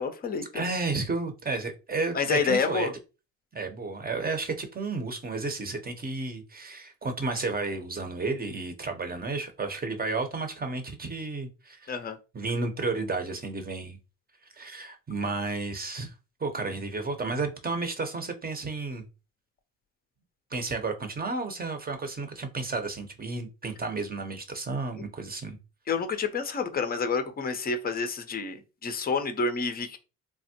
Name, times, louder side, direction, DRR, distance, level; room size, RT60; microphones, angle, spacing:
voice 1, 0.0-0.5 2.1-2.9 11.9-12.2 25.0-25.1 25.9-30.0, left 5 dB, 25° left, 0.6 m, -28 dB
voice 2, 0.5-2.9 3.5-11.9 12.3-14.0 14.5-16.1 16.4-19.0 20.5-25.6, right 3 dB, 20° right, 0.8 m, -32 dB
3.4 x 2.1 x 2.8 m
supercardioid pair, 75°, 40 cm